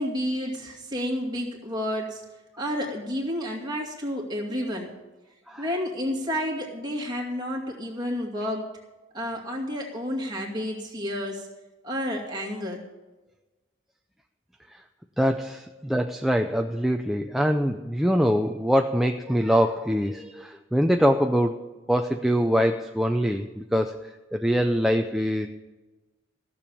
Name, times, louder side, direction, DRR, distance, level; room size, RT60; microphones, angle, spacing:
voice 1, 0.0-2.2 2.6-4.9 5.6-8.7 9.1-11.5 11.8-12.8, equal, 20° right, -2 dB, 2.4 m, -30 dB
voice 2, 15.2-21.6 21.9-25.5, equal, ahead, 4 dB, 0.5 m, -24 dB
14.5 x 7.0 x 8.6 m, 1.1 s
head